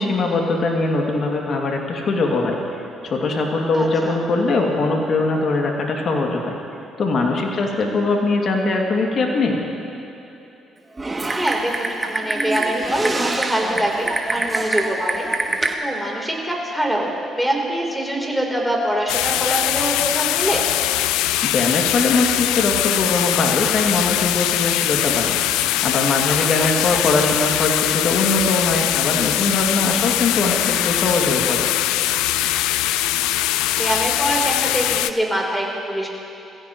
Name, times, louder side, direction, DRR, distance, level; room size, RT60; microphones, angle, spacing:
voice 1, 0.0-2.6 3.0-6.5 7.0-9.6 21.4-25.4 25.8-31.7, left 3 dB, 55° left, 0 dB, 2.4 m, -21 dB
voice 2, 3.7-4.2 7.5-7.7 11.3-15.3 15.6-20.7 26.6-27.0 33.7-36.1, right 1 dB, ahead, -1 dB, 3.8 m, -24 dB
Typing, 11.0-15.7, right 2 dB, 25° right, 1.5 m, -25 dB
sound 1, 19.1-35.1, left 14 dB, 85° left, 0.3 m, -21 dB
20.5 x 15.5 x 3.1 m, 2.9 s
supercardioid pair, 60°, 0 cm